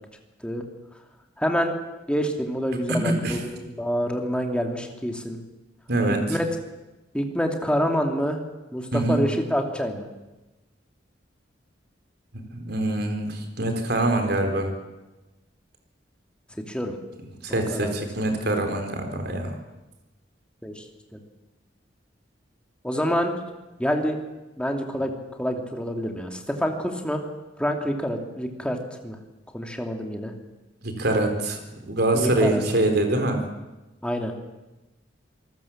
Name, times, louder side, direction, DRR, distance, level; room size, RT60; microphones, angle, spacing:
voice 1, 1.4-1.7 2.1-5.4 6.3-6.5 7.1-8.4 8.7-10.1 16.7-17.0 17.5-18.0 20.6-20.8 21.1-21.2 22.8-23.3 23.8-24.2 24.6-27.2 27.6-28.8 29.0-29.2 29.5-30.3 32.1-32.6 34.0-34.3, equal, 5° left, 3 dB, 2.7 m, -27 dB
voice 2, 2.9-3.4 5.9-6.4 8.9-9.2 12.3-14.7 17.4-19.5 30.8-33.4, right 2 dB, 60° right, 5 dB, 4.1 m, -24 dB
27.5 x 19.0 x 7.4 m, 1.1 s
head